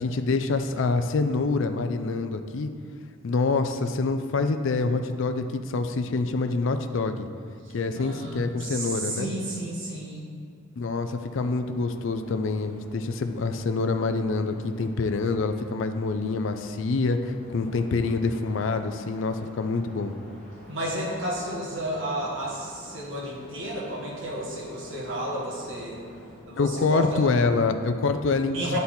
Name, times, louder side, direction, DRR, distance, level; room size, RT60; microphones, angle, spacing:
voice 1, 0.0-2.7 3.2-7.3 7.7-9.3 10.8-20.1 26.6-28.8, left 3 dB, 60° left, 7 dB, 0.4 m, -26 dB
voice 2, 7.6-10.2 20.7-26.0 26.5-27.2 28.5-28.8, right 1 dB, 65° right, -5 dB, 1.6 m, -32 dB
sound 1, 11.2-26.4, equal, ahead, 1.8 m, -49 dB
9.6 x 4.1 x 4.3 m, 2.2 s
head